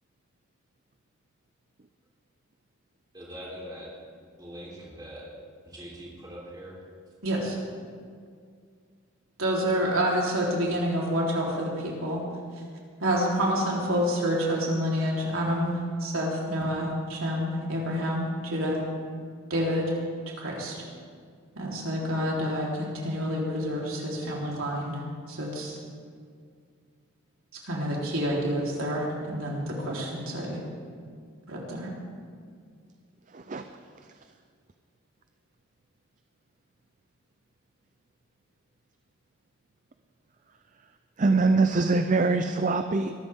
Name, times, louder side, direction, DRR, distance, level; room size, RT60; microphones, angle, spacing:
voice 1, 3.1-3.9 4.4-5.3 5.6-6.8, equal, 20° right, -5 dB, 3.7 m, -42 dB
voice 2, 7.2-7.6 9.4-12.2 13.0-18.8 19.5-19.9 20.4-20.8 21.6-25.0 25.3-25.8 27.6-30.6 31.5-31.9, equal, 75° right, -3 dB, 3.7 m, -28 dB
voice 3, 33.3-33.6 34.0-34.1 41.2-43.1, right 3 dB, 35° right, 8 dB, 0.5 m, -24 dB
23.0 x 13.5 x 3.7 m, 2.1 s
head